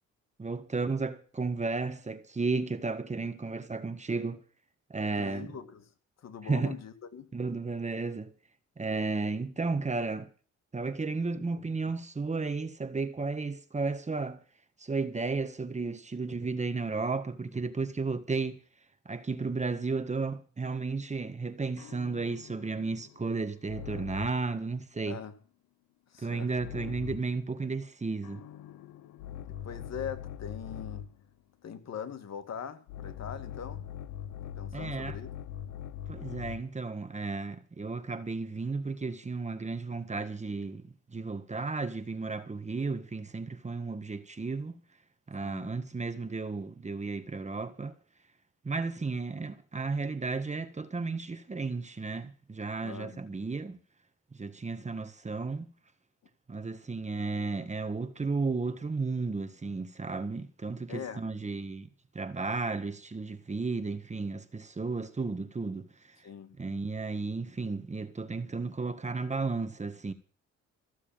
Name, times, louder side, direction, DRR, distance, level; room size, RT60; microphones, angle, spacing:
voice 1, 0.4-4.4 4.9-5.5 6.4-6.8 7.3-8.3 8.8-10.3 10.7-14.4 14.8-18.6 19.0-25.2 26.2-28.4 34.7-35.2 36.1-40.8 41.1-44.8 45.3-47.9 48.6-53.8 54.3-55.7 56.5-61.9 62.1-65.9 66.6-70.1, right 4 dB, 25° right, 1.6 m, -33 dB
voice 2, 5.2-5.9 6.2-7.3 25.1-25.3 26.1-26.5 29.5-31.1 31.6-33.9 34.6-35.3 45.4-45.7 52.8-53.2 60.9-61.3 66.2-66.6, left 7 dB, 60° left, 2.1 m, -42 dB
sound 1, 21.8-24.5 26.6-27.4 28.2-31.2 32.9-36.8, left 10 dB, 90° left, 1.2 m, -42 dB
15.0 x 7.3 x 8.9 m
cardioid pair, 90°, 30 cm